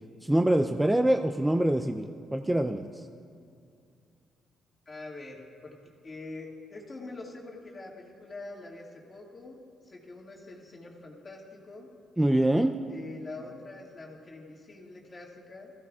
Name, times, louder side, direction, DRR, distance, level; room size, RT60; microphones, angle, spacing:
voice 1, 0.2-2.9 12.2-12.8, right 1 dB, 10° right, 6 dB, 0.5 m, -25 dB
voice 2, 4.9-5.8 6.0-11.9 12.9-15.7, left 2 dB, 30° left, -2 dB, 2.0 m, -44 dB
17.5 x 14.5 x 2.4 m, 2.4 s
cardioid pair, 90°, 0 cm